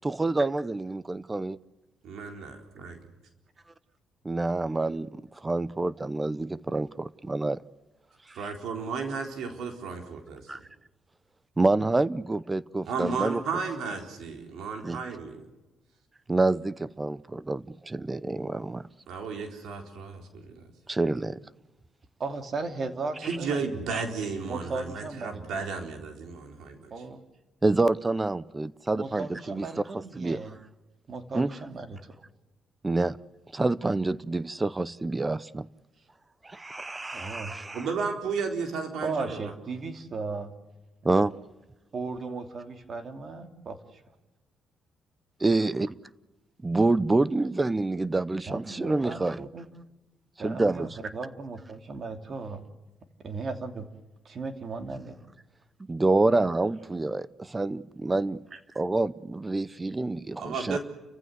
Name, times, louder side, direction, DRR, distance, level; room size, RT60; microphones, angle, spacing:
voice 1, 0.0-1.6 4.2-7.6 10.5-10.6 11.6-13.4 14.8-15.0 16.3-18.9 20.9-21.4 23.9-24.0 27.6-29.7 30.2-30.4 31.3-31.5 32.8-33.2 33.5-35.7 36.4-37.9 41.0-41.3 45.4-45.9 46.6-49.4 50.4-50.9 55.9-58.4 58.8-60.8, right 2 dB, 20° right, 0.7 m, -27 dB
voice 2, 2.0-2.6 2.8-2.9 8.3-10.5 12.9-15.4 19.1-20.6 23.2-26.9 37.7-39.5 60.4-60.8, right 5 dB, 75° right, 4.1 m, -33 dB
voice 3, 22.2-23.9 24.5-25.7 26.9-27.2 28.9-30.6 31.1-32.1 37.1-37.5 39.0-40.6 41.9-44.0 48.5-49.7 50.4-52.7 53.2-53.9 54.2-55.1 56.2-56.3 58.5-58.6, right 3 dB, 45° right, 2.8 m, -36 dB
30.0 x 15.5 x 8.1 m
cardioid pair, 90°, 0 cm